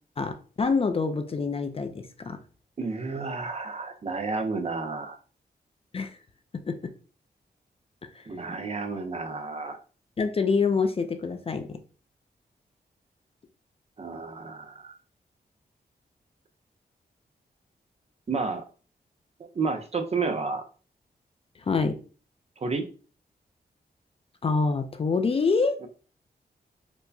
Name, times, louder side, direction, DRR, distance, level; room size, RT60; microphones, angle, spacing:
voice 1, 0.2-2.4 5.9-6.2 6.7-6.8 8.1-8.2 10.2-11.8 21.7-22.0 24.4-25.8, left 4 dB, 35° left, 7 dB, 0.4 m, -26 dB
voice 2, 2.8-5.2 8.3-9.8 14.0-14.9 18.3-18.6 19.5-20.6 22.6-22.9 25.8-25.9, right 4 dB, 40° right, 7 dB, 0.5 m, -31 dB
4.5 x 2.1 x 2.6 m, 0.38 s
wide cardioid pair, 110°, 17 cm